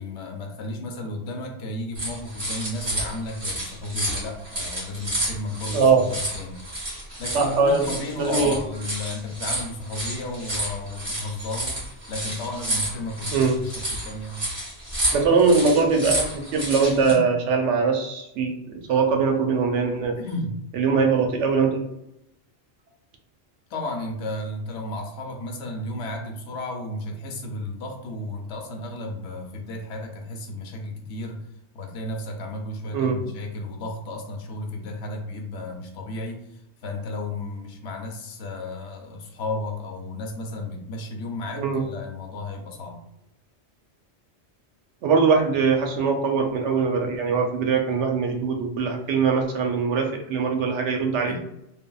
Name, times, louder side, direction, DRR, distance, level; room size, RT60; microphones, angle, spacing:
voice 1, 0.0-6.6 7.2-11.8 12.1-14.5 17.0-17.2 20.2-20.6 23.7-31.5 31.7-43.0 51.3-51.4, left 2 dB, 80° left, 2 dB, 0.9 m, -33 dB
sound 1, 1.9-17.1, right 1 dB, 50° right, 1.8 m, -30 dB
voice 2, 5.7-6.1 7.3-7.8 8.2-8.6 13.3-13.6 15.1-20.2 20.8-21.8 32.9-33.2 41.6-41.8 45.0-51.4, right 5 dB, 85° right, 3 dB, 0.9 m, -21 dB
3.3 x 2.0 x 2.2 m, 0.81 s
omnidirectional pair, 1.2 m